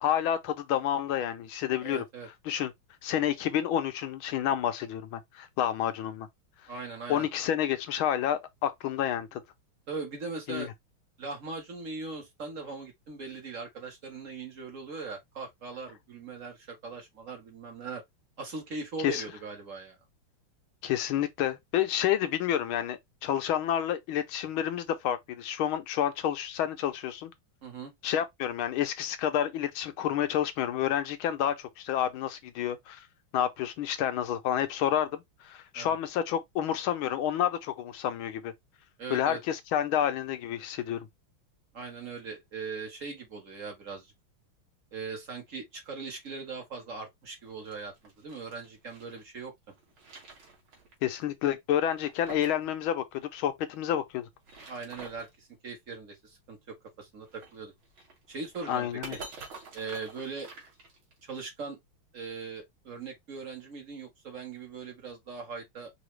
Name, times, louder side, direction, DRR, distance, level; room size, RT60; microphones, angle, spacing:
voice 1, 0.0-2.0 2.5-2.7 3.0-6.3 7.1-9.4 10.5-10.7 19.0-19.2 20.8-27.3 28.0-33.0 33.3-35.1 35.4-38.5 39.1-41.1 51.0-54.3 58.7-59.2, left 10 dB, 75° left, 1.5 m, -29 dB
voice 2, 1.8-2.3 6.7-7.3 9.9-10.7 11.2-18.0 18.4-20.0 27.6-27.9 35.7-36.0 39.0-39.4 41.7-44.1 44.9-49.5 54.6-57.7 58.3-59.2 59.7-60.5 61.3-61.8 62.1-65.9, right 4 dB, 40° right, 1.6 m, -40 dB
sound 1, 47.4-49.2 49.7-50.9 51.2-51.3 51.8-52.6 52.9-53.0 54.2-55.3 57.3-61.3, right 3 dB, 70° right, 2.4 m, -48 dB
4.9 x 2.8 x 3.2 m
omnidirectional pair, 2.3 m